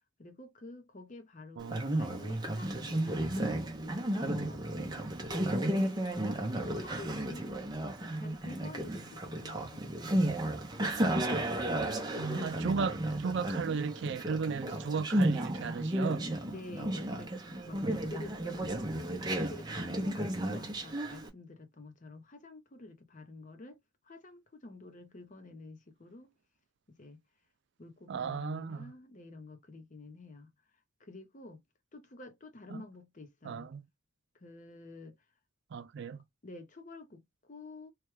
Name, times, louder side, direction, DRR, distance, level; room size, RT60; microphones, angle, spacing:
voice 1, 0.2-5.9 6.5-7.6 8.0-10.3 16.4-17.3 17.7-23.8 24.0-26.3 27.0-27.2 27.8-30.5 31.0-31.6 31.9-33.7 34.4-35.2 36.4-37.9, left 2 dB, 35° left, 0.7 m, -49 dB
Conversation, 1.6-21.3, right 1 dB, 20° right, 0.7 m, -33 dB
voice 2, 1.6-1.9 12.2-16.3 28.1-28.9 32.7-32.8 33.4-33.9 35.7-36.2, right 5 dB, 55° right, 0.3 m, -35 dB
3.2 x 2.3 x 3.1 m
head